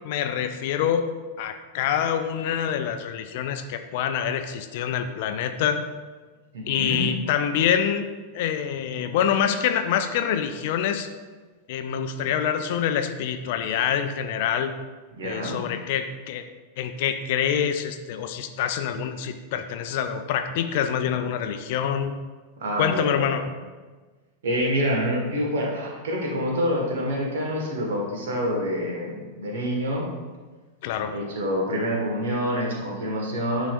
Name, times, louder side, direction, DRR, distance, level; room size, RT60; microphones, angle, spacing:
voice 1, 0.0-1.1 1.4-5.8 6.7-8.1 8.3-11.1 11.7-14.7 15.2-16.4 16.8-22.1 22.8-23.4 30.8-31.2, left 8 dB, 50° left, 8 dB, 0.5 m, -26 dB
voice 2, 6.5-7.0 15.1-15.6 22.6-23.5 24.4-30.1 31.1-33.7, equal, 60° right, -1 dB, 1.6 m, -27 dB
10.0 x 4.1 x 2.5 m, 1.3 s
figure-of-eight pair, 90°, 0 cm